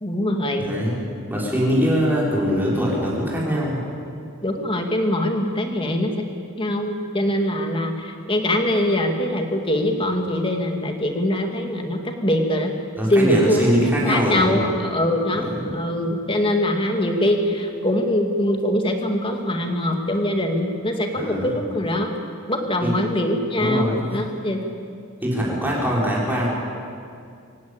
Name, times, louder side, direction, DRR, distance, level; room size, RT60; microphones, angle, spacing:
voice 1, 0.0-0.7 4.4-6.3 6.6-12.7 13.1-22.2 22.5-24.6, left 1 dB, 25° left, 3 dB, 2.5 m, -23 dB
voice 2, 0.6-1.0 1.3-3.8 13.0-14.6 15.3-15.8 21.1-21.5 22.8-22.9 23.6-24.2 25.2-26.5, equal, 10° right, -5 dB, 6.1 m, -22 dB
25.5 x 16.5 x 8.9 m, 2.4 s
head